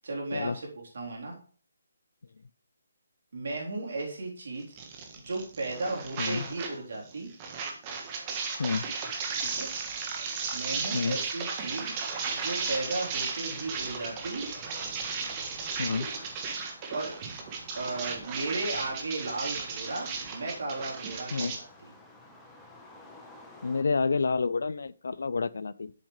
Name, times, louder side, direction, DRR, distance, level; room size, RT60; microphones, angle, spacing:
voice 1, 0.0-0.6 0.9-1.3 3.3-4.7 5.2-7.3 9.4-9.7 10.5-11.9 12.3-14.5 16.9-17.2 17.7-21.7, right 2 dB, 65° right, -2 dB, 3.7 m, -35 dB
sound 1, 4.7-6.8 7.0-21.6, right 5 dB, 25° right, 1.4 m, -35 dB
sound 2, 11.7-23.8, left 2 dB, 5° left, 1.1 m, -53 dB
voice 2, 23.6-25.9, left 4 dB, 70° left, 20 dB, 0.5 m, -29 dB
7.7 x 7.2 x 3.3 m, 0.43 s
hypercardioid pair, 155°, 0 cm